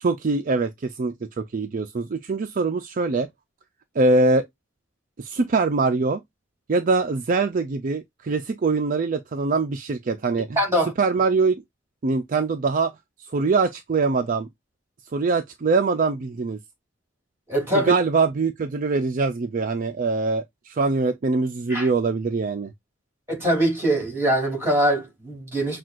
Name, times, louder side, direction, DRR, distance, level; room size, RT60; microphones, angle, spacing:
voice 1, 0.0-3.3 4.0-4.5 5.2-6.2 6.7-10.6 11.0-11.6 12.0-12.9 13.3-14.5 15.1-16.6 17.7-22.7, right 3 dB, 45° right, 0.4 m, -23 dB
voice 2, 10.6-10.9 17.5-18.0 21.7-21.9 23.3-25.8, right 1 dB, 10° right, 2.7 m, -22 dB
6.0 x 2.4 x 2.4 m
head